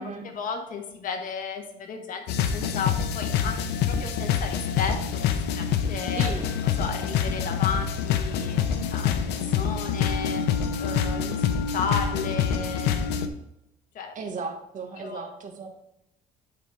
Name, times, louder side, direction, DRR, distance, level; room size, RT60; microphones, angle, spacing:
voice 1, 0.3-6.3 6.8-8.6 8.9-10.4 10.8-13.1 13.9-14.1 15.0-15.3, left 5 dB, 55° left, 4 dB, 1.2 m, -34 dB
sound 1, 2.3-13.3, left 7 dB, 80° left, 0.7 m, -26 dB
voice 2, 14.1-15.7, right 4 dB, 50° right, 3 dB, 1.5 m, -35 dB
10.0 x 4.1 x 3.6 m, 0.83 s
cardioid pair, 110°, 17 cm